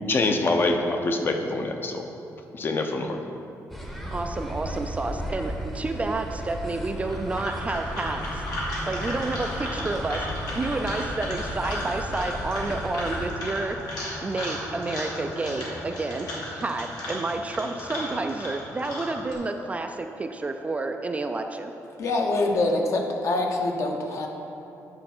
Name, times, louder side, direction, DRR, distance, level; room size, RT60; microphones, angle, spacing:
voice 1, 0.1-2.1 2.5-3.2, left 2 dB, 35° left, 4 dB, 0.7 m, -25 dB
sound 1, 3.7-13.3, equal, 5° left, 0.8 m, -35 dB
voice 2, 4.1-8.4 8.8-10.3 10.5-13.8 14.2-21.7, right 3 dB, 20° right, 5 dB, 0.4 m, -30 dB
sound 2, 7.0-19.3, left 1 dB, 90° left, 2.1 m, -34 dB
voice 3, 22.0-24.3, left 2 dB, 50° left, 2 dB, 1.0 m, -25 dB
9.7 x 4.5 x 6.0 m, 2.8 s
cardioid pair, 145°, 6 cm